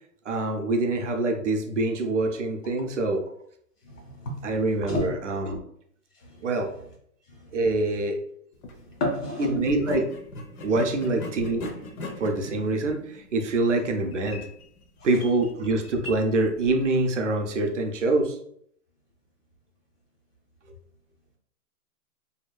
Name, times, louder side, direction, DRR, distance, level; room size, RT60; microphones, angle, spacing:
voice 1, 0.3-3.2 4.4-5.6 6.4-6.7 7.5-8.2 9.4-10.1 10.6-11.8 12.2-14.5 15.0-18.4, right 2 dB, 55° right, 3 dB, 0.5 m, -25 dB
voice 2, 3.9-4.4 4.9-5.1 9.0-9.5, left 1 dB, 85° left, 0 dB, 1.3 m, -29 dB
sound 1, 8.5-8.8 9.6-17.1, left 2 dB, 70° left, 0.7 m, -41 dB
2.6 x 2.2 x 2.3 m, 0.67 s
hypercardioid pair, 180°, 45 cm